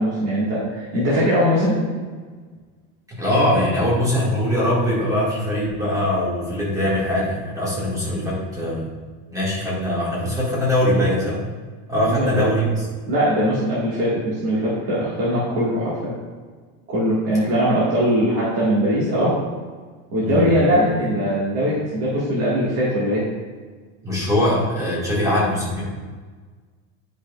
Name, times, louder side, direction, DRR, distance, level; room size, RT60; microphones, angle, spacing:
voice 1, 0.0-1.8 12.1-12.4 13.1-16.1 16.9-19.3 20.1-23.2, equal, 35° right, -8 dB, 1.8 m, -21 dB
voice 2, 3.1-8.9 9.3-11.4 11.9-12.9 20.2-20.5 24.0-25.9, left 1 dB, 10° right, -6 dB, 1.9 m, -22 dB
10.0 x 5.3 x 2.4 m, 1.5 s
cardioid pair, 160°, 41 cm